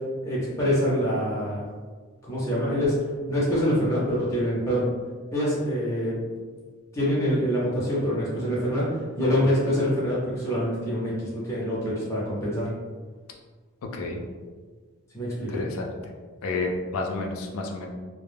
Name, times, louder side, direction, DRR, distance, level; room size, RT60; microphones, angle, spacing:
voice 1, 0.2-1.7 2.3-3.0 3.3-4.9 5.3-6.2 6.9-12.7 15.1-15.6, equal, 15° left, -8 dB, 0.6 m, -25 dB
voice 2, 15.5-15.9 16.4-17.9, left 3 dB, 75° left, 1 dB, 0.4 m, -30 dB
2.2 x 2.1 x 3.3 m, 1.5 s
head